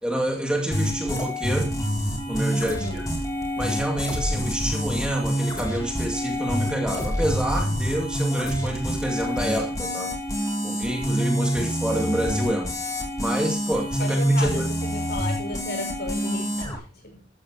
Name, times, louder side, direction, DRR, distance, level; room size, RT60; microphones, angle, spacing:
voice 1, 0.0-1.7 2.3-3.0 3.6-10.1 10.6-12.7 13.2-14.7, right 1 dB, 5° right, 2.4 m, -27 dB
sound 1, 0.7-16.8, equal, 20° left, 3.8 m, -27 dB
voice 2, 2.4-3.0 14.0-17.2, left 2 dB, 55° left, 6.0 m, -34 dB
14.0 x 13.5 x 2.9 m
head